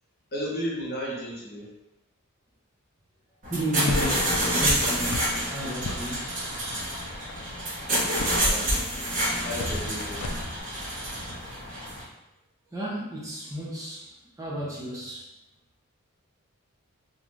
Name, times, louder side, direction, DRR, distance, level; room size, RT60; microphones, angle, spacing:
voice 1, 0.3-1.7 8.0-8.7 9.4-10.5, equal, 45° left, -4 dB, 0.7 m, -34 dB
sound 1, 3.4-12.0, right 1 dB, 35° right, 0.9 m, -28 dB
voice 2, 3.5-6.4 12.7-15.4, equal, 15° right, -6 dB, 0.5 m, -33 dB
sound 2, 3.9-10.6, left 2 dB, 70° left, 0.4 m, -37 dB
2.5 x 2.3 x 3.1 m, 0.92 s
head